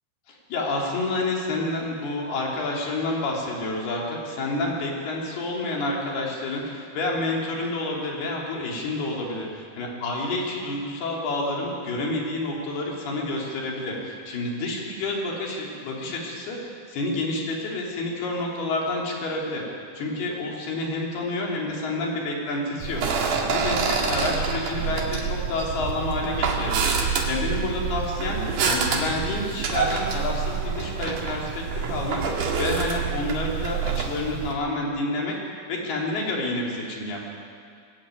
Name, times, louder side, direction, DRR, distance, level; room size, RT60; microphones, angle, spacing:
voice 1, 0.3-19.6 20.0-23.0 23.4-23.8 24.0-27.0 27.3-32.2 32.6-35.4 35.7-37.3, left 2 dB, 80° left, -2 dB, 5.3 m, -29 dB
sound 1, 22.8-34.5, right 5 dB, 60° right, 3.3 m, -27 dB
20.5 x 16.0 x 9.2 m, 2.3 s
omnidirectional pair, 4.5 m